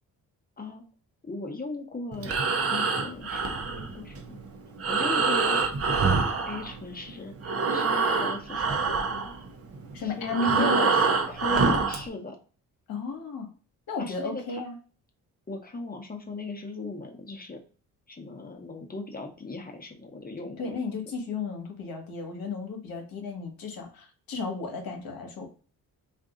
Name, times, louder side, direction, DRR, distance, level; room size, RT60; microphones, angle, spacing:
voice 1, 1.2-2.4 2.7-4.4 4.9-5.6 6.5-9.3 10.0-11.0 11.3-12.4 14.0-14.6 15.5-17.6 18.1-20.7, left 3 dB, 25° left, 3 dB, 0.9 m, -38 dB
Breathing, 2.1-7.1 7.4-12.1, right 4 dB, 40° right, 0.7 m, -26 dB
voice 2, 9.9-10.9 11.5-11.7 12.9-13.5 13.9-14.7 20.6-25.5, left 3 dB, 65° left, 3 dB, 1.1 m, -33 dB
2.6 x 2.5 x 3.6 m, 0.38 s
supercardioid pair, 55°, 38 cm